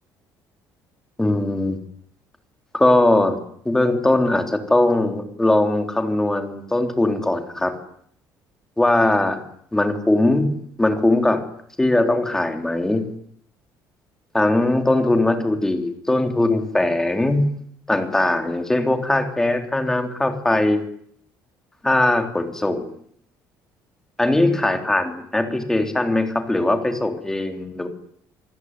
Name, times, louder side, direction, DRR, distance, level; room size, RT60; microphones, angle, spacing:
voice 1, 1.2-1.8 2.7-3.4 3.7-7.8 8.8-9.4 9.7-11.4 11.8-13.1 14.3-17.6 17.9-20.8 21.8-22.9 24.2-27.9, left 2 dB, 5° left, 5 dB, 3.5 m, -20 dB
27.5 x 20.5 x 9.7 m, 0.66 s
cardioid pair, 175°, 7 cm